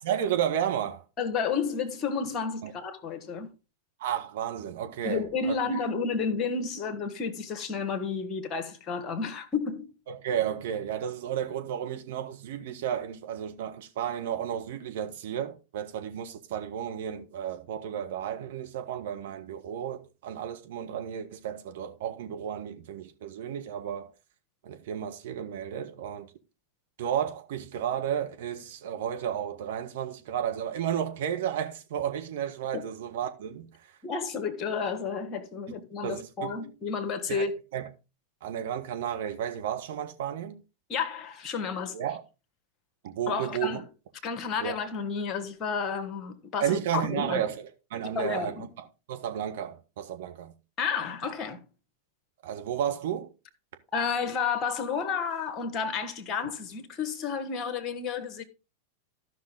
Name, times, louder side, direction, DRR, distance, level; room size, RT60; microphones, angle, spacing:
voice 1, 0.0-1.0 2.6-2.7 4.0-5.6 10.1-24.1 24.6-26.3 27.0-34.0 35.7-36.5 37.3-37.4 37.7-37.9 38.4-40.6 41.9-42.2 43.0-43.8 44.6-44.7 46.6-48.5 49.1-50.5 52.4-53.3, right 9 dB, 55° right, 1.5 m, -32 dB
voice 2, 1.2-3.5 5.0-9.9 32.7-32.8 34.0-37.5 40.9-42.0 43.3-43.8 44.2-47.4 48.1-48.7 50.8-51.6 53.9-58.4, left 5 dB, 30° left, 1.6 m, -31 dB
14.0 x 5.9 x 3.7 m
figure-of-eight pair, 90°, 0 cm